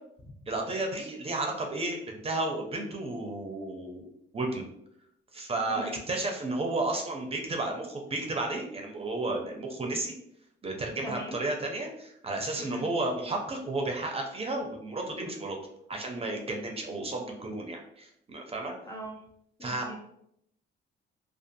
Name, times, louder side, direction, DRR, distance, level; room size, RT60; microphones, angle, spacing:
voice 1, 0.5-4.1 4.3-4.6 5.3-10.1 10.6-15.6 15.9-18.7 19.6-19.9, right 2 dB, 30° right, 1 dB, 0.5 m, -32 dB
voice 2, 11.0-11.4 12.6-12.9 18.8-19.2 19.6-20.0, equal, 15° left, 0 dB, 0.5 m, -40 dB
2.5 x 2.4 x 2.6 m, 0.74 s
cardioid pair, 90°, 20 cm